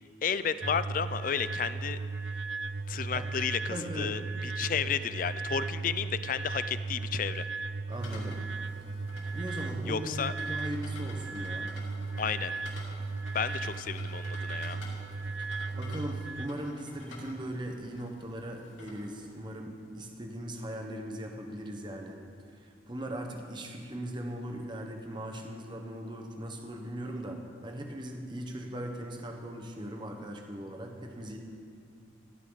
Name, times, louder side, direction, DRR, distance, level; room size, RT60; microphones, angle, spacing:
voice 1, 0.2-2.0 2.9-7.5 9.9-10.3 12.2-12.5 13.3-14.8, left 7 dB, 45° left, 14 dB, 0.4 m, -32 dB
sound 1, 0.6-16.5, right 4 dB, 80° right, 0.7 m, -36 dB
voice 2, 3.7-4.2 7.9-8.4 9.3-11.7 15.4-15.5 15.8-22.2 22.5-31.4, right 1 dB, 25° right, 3 dB, 1.2 m, -39 dB
sound 2, 7.9-19.4, left 2 dB, 85° left, 2.7 m, -50 dB
15.0 x 14.0 x 4.1 m, 2.4 s
head